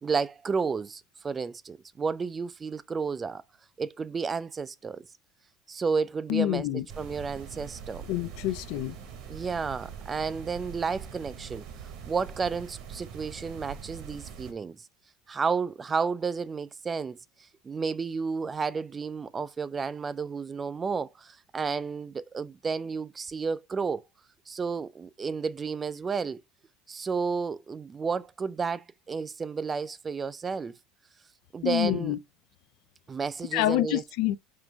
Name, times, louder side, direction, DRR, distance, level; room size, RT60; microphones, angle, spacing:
voice 1, 0.0-3.4 3.8-5.1 5.7-6.6 7.0-8.0 9.3-11.6 12.0-14.9 15.3-17.2 17.6-24.0 24.5-26.4 26.9-30.7 31.5-32.1 33.1-34.0, right 5 dB, 25° right, 0.3 m, -31 dB
voice 2, 6.3-6.9 8.1-9.0 31.6-32.2 33.5-34.4, left 15 dB, 70° left, 0.3 m, -27 dB
sound 1, 6.9-14.5, right 7 dB, 65° right, 1.0 m, -43 dB
3.8 x 2.4 x 4.5 m
supercardioid pair, 115°, 0 cm